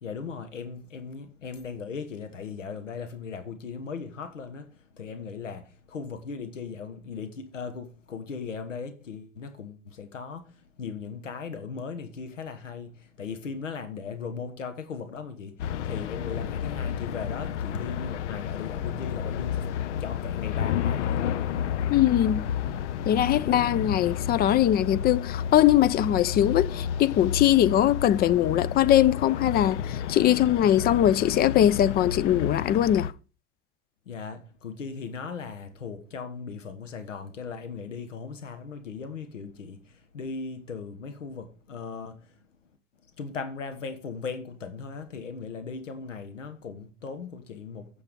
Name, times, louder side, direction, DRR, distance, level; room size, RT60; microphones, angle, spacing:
voice 1, 0.0-4.7 5.0-10.5 10.8-19.6 20.0-21.4 34.1-42.3 43.2-47.9, left 5 dB, 90° left, 1.3 m, -38 dB
sound 1, 15.6-33.1, left 9 dB, 70° left, 0.8 m, -31 dB
voice 2, 21.9-22.4 23.1-33.1, left 11 dB, 25° left, 0.4 m, -21 dB
8.9 x 7.0 x 5.2 m
hypercardioid pair, 90°, 37 cm